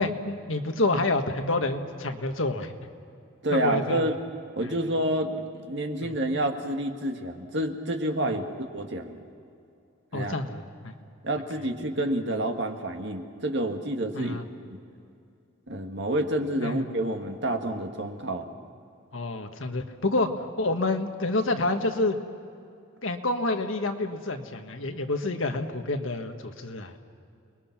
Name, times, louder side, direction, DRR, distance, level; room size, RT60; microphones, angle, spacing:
voice 1, 0.0-2.7 3.5-4.0 4.6-4.7 6.0-6.1 8.2-8.3 10.1-10.9 14.1-14.4 16.6-16.8 19.1-22.2 23.0-27.0, left 2 dB, 80° left, 6 dB, 1.6 m, -28 dB
voice 2, 3.4-4.2 4.6-8.4 8.7-9.2 10.1-10.3 11.2-14.4 14.7-14.8 15.7-18.5, right 1 dB, 60° right, 4 dB, 1.9 m, -28 dB
29.5 x 21.0 x 6.0 m, 2.5 s
head